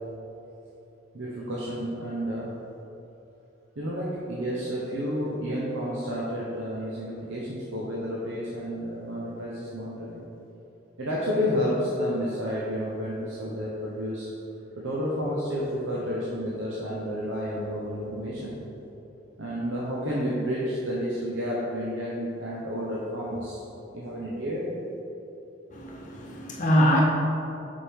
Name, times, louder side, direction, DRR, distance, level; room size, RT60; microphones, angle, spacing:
voice 1, 1.1-2.5 3.8-10.2 11.0-14.3 14.8-18.6 19.4-23.6 23.9-24.6, equal, 80° right, -6 dB, 0.9 m, -30 dB
voice 2, 25.7-27.0, equal, 40° left, -2 dB, 0.7 m, -23 dB
7.0 x 5.3 x 3.6 m, 2.9 s
head